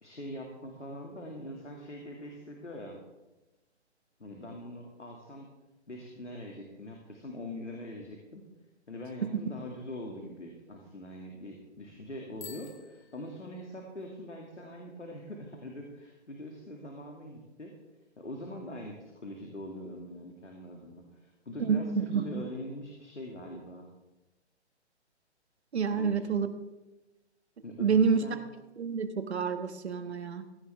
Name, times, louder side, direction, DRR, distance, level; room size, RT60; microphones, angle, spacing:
voice 1, 0.0-3.0 4.2-5.5 5.9-8.5 8.9-17.7 18.2-23.9 25.9-26.2 27.6-28.4, left 1 dB, 90° left, 1 dB, 2.3 m, -43 dB
Bicycle bell, 12.3-14.1, left 6 dB, 70° left, 3.1 m, -51 dB
voice 2, 21.7-22.4 25.7-26.5 27.8-28.2 28.8-30.5, right 6 dB, 65° right, 9 dB, 1.4 m, -28 dB
16.5 x 15.0 x 3.4 m, 1.1 s
figure-of-eight pair, 125°, 35 cm